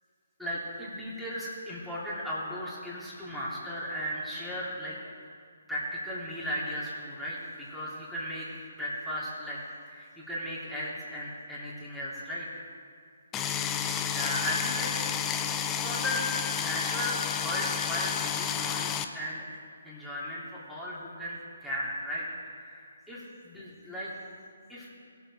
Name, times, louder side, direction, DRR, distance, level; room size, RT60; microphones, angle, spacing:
voice 1, 0.4-5.0 5.7-8.5 8.7-9.6 9.9-12.7 14.1-15.0 15.7-16.2 16.5-19.4 19.8-24.1 24.7-24.9, equal, ahead, -9 dB, 3.2 m, -36 dB
sound 1, 13.3-19.0, left 8 dB, 15° left, 0.6 m, -31 dB
20.5 x 7.1 x 4.9 m, 2.3 s
figure-of-eight pair, 135°, 0 cm